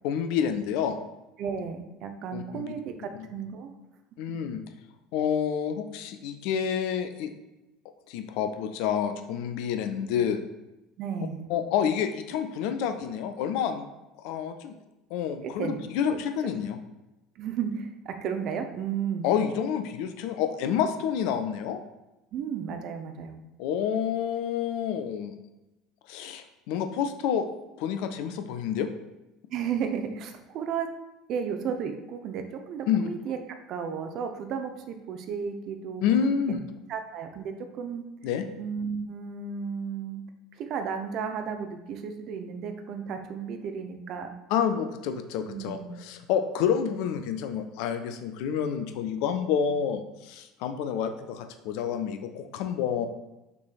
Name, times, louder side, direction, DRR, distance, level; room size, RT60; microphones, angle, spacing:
voice 1, 0.0-1.0 2.3-2.7 4.2-4.6 5.1-7.3 8.1-10.4 11.5-13.9 14.2-14.7 15.1-16.8 19.2-21.8 23.6-25.4 26.1-27.5 27.8-28.9 32.9-33.1 36.0-36.6 38.2-38.5 44.5-53.1, left 8 dB, 60° left, 8 dB, 0.3 m, -28 dB
voice 2, 1.4-3.7 11.0-11.5 15.6-15.8 17.4-19.3 22.3-23.4 29.5-30.9 31.3-33.4 33.7-36.0 36.5-36.6 36.9-38.0 38.6-40.2 40.6-44.3 45.5-45.9, right 7 dB, 50° right, 6 dB, 0.5 m, -33 dB
5.9 x 3.3 x 2.4 m, 1.0 s
figure-of-eight pair, 65°, 0 cm